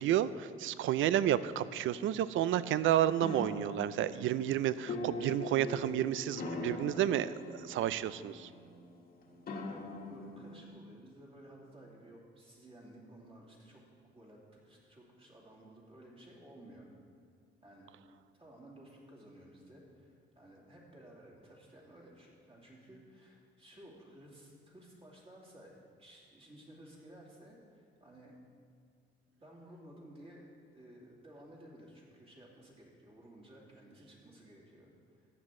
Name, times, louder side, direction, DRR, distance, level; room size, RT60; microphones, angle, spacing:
voice 1, 0.0-8.5, right 11 dB, 75° right, 16 dB, 0.4 m, -31 dB
sound 1, 3.2-10.7, left 2 dB, 45° left, 1.4 m, -42 dB
voice 2, 10.1-13.8 14.1-16.9 17.6-18.0 18.4-25.7 26.0-28.4 29.4-35.3, right 1 dB, 30° right, -3 dB, 2.7 m, -55 dB
14.5 x 9.7 x 3.7 m, 2.1 s
cardioid pair, 140°, 21 cm